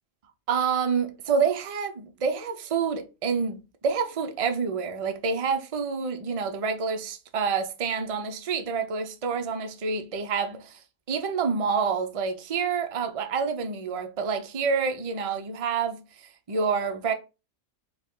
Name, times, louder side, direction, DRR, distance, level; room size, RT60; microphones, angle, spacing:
voice 1, 0.5-17.1, right 5 dB, 40° right, 0.5 m, -28 dB
4.7 x 2.5 x 3.7 m
omnidirectional pair, 1.4 m